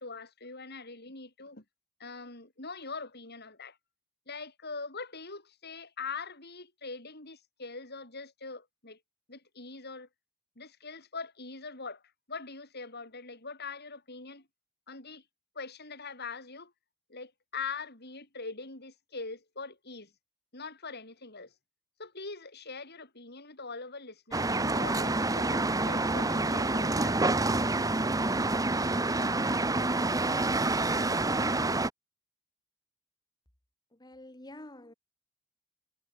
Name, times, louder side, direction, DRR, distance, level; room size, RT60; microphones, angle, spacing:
voice 1, 0.0-1.6 2.0-3.8 4.3-9.0 9.3-10.1 10.6-12.0 12.3-14.4 14.9-15.2 15.5-16.7 17.1-20.1 20.5-21.5 22.0-27.2, left 4 dB, 50° left, 8.0 m, -42 dB
sound 1, 24.3-31.9, right 2 dB, 15° right, 1.1 m, -28 dB
voice 2, 33.9-34.9, left 1 dB, 20° left, 1.9 m, -48 dB
head